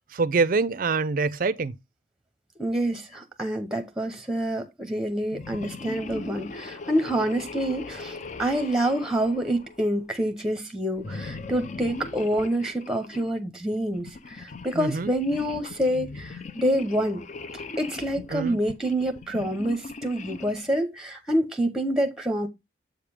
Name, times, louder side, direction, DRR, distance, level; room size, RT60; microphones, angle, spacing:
voice 1, 0.1-1.7 14.8-15.1 18.3-18.6, right 4 dB, 45° right, 0.4 m, -25 dB
voice 2, 2.6-17.2 17.8-22.5, right 1 dB, 5° right, 0.8 m, -27 dB
sound 1, 5.3-10.1 11.0-13.3 13.9-20.7, left 3 dB, 40° left, 0.4 m, -39 dB
7.7 x 5.0 x 3.4 m
head